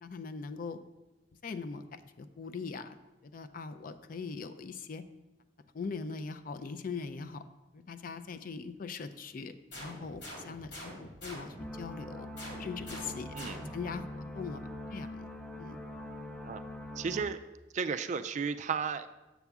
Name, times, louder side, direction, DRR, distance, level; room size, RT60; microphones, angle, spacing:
voice 1, 0.0-0.8 1.4-3.0 3.2-5.0 5.7-7.4 7.7-12.3 12.6-13.4 13.7-14.6 14.9-15.3 15.6-15.8, left 5 dB, 50° left, 11 dB, 0.4 m, -41 dB
sound 1, 9.7-11.8 12.4-13.9, equal, 80° left, 2.8 m, -46 dB
sound 2, 11.6-17.2, left 1 dB, 5° left, 0.6 m, -43 dB
voice 2, 13.4-13.7 16.4-16.6 17.0-17.4 17.7-19.1, right 6 dB, 40° right, 11 dB, 0.3 m, -34 dB
7.1 x 6.9 x 3.5 m, 1.1 s
head